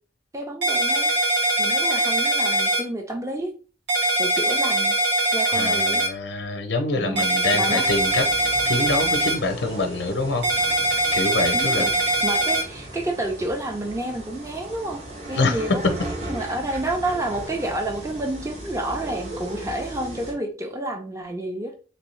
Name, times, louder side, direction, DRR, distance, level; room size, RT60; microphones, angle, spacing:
voice 1, 0.3-1.1 1.6-3.5 4.2-4.9 5.3-6.1 6.9-7.9 11.5-15.0 15.3-15.9 16.2-21.7, right 1 dB, 15° right, 0.5 m, -29 dB
sound 1, 0.6-2.8 3.9-6.1 7.2-9.4 10.4-12.6, right 1 dB, 80° right, 1.2 m, -22 dB
voice 2, 5.5-8.2 8.7-10.4 11.1-11.9 15.3-15.7, left 2 dB, 90° left, 0.5 m, -25 dB
sound 2, 7.8-20.3, right 1 dB, 40° right, 0.9 m, -37 dB
3.4 x 2.7 x 3.1 m
head